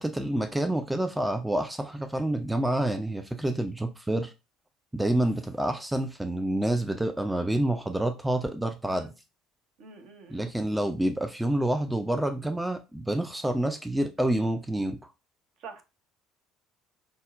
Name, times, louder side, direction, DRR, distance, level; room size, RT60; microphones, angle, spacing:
voice 1, 0.0-4.3 4.9-9.1 10.3-15.1, right 1 dB, 5° right, 0.3 m, -28 dB
voice 2, 9.8-10.5 15.6-15.8, right 5 dB, 55° right, 0.7 m, -46 dB
5.2 x 2.0 x 2.4 m
figure-of-eight pair, 55°, 0 cm